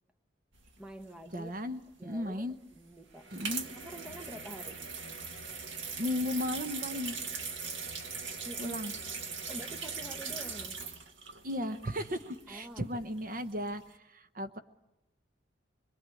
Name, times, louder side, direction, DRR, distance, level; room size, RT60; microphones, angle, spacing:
sound 1, 0.5-1.5 2.5-12.6 13.0-13.4 13.7-13.8, right 5 dB, 85° right, 1.8 m, -40 dB
voice 1, 0.8-1.5 2.0-3.3 3.8-4.8 8.4-8.8 9.5-10.8 12.5-13.0, equal, 5° right, 7 dB, 1.2 m, -47 dB
voice 2, 1.3-2.5 3.3-3.6 6.0-7.2 8.6-8.9 11.4-14.6, left 1 dB, 45° right, 8 dB, 0.9 m, -35 dB
25.5 x 22.5 x 8.4 m, 0.96 s
head